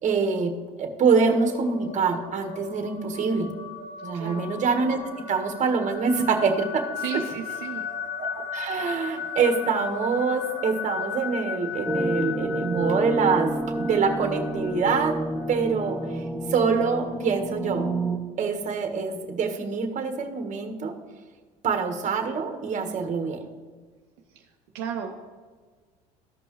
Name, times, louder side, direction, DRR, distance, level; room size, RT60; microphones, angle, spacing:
voice 1, 0.0-3.5 4.0-5.0 5.3-6.8 8.2-15.2 15.5-16.0 16.5-17.9 18.4-20.9 21.6-23.4, right 5 dB, 45° right, 5 dB, 1.4 m, -25 dB
Ambient Long resonance, 1.1-16.2, left 6 dB, 45° left, 1.3 m, -36 dB
voice 2, 4.1-4.4 7.0-7.9 24.3-24.4 24.7-25.2, right 8 dB, 70° right, 2 dB, 0.8 m, -33 dB
sound 1, 11.9-18.2, right 1 dB, ahead, 0.8 m, -29 dB
14.0 x 5.3 x 3.1 m, 1.5 s
supercardioid pair, 80°, 18 cm